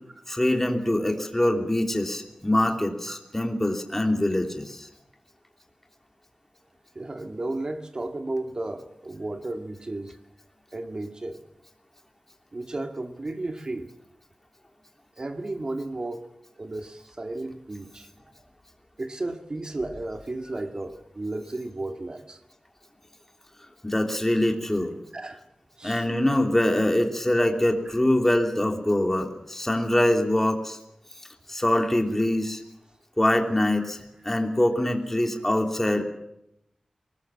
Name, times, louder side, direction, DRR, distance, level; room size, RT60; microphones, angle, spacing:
voice 1, 0.3-4.9 23.8-24.9 25.8-30.8 31.5-32.6 33.2-34.0 34.2-36.0, left 1 dB, 15° left, 3 dB, 3.2 m, -24 dB
voice 2, 7.0-10.2 10.7-11.4 12.5-13.9 15.2-16.2 16.6-18.1 19.0-22.4 25.1-25.4 25.8-26.1 33.8-33.9, right 2 dB, 45° right, 6 dB, 2.1 m, -33 dB
23.5 x 20.0 x 7.4 m, 0.81 s
wide cardioid pair, 90°, 2 cm